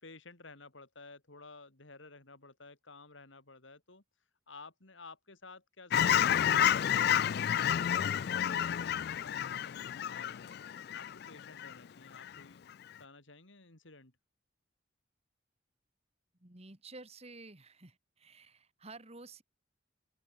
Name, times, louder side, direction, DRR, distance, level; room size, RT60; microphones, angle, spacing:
voice 1, 0.0-4.0 4.5-10.5 10.9-12.7 13.0-14.1, left 3 dB, 70° left, 3.1 m, -54 dB
Fowl / Chirp tweet, 5.9-11.7 12.1-12.4, left 10 dB, 50° left, 0.3 m, -30 dB
voice 2, 16.4-19.4, right 3 dB, 30° right, 2.3 m, -51 dB
open air
head